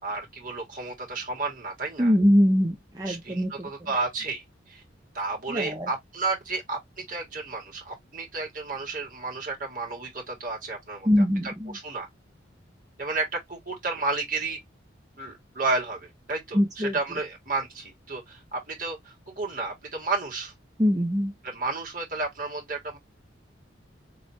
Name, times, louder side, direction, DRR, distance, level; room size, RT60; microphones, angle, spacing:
voice 1, 0.0-2.1 3.1-4.8 5.1-11.1 11.4-11.5 11.8-12.1 13.0-14.6 15.2-20.5 21.4-23.0, right 3 dB, 45° right, 2.4 m, -32 dB
voice 2, 2.0-3.7 5.5-5.9 11.0-11.8 16.5-17.0 20.8-21.3, equal, 20° right, 0.9 m, -23 dB
4.3 x 3.5 x 3.0 m
head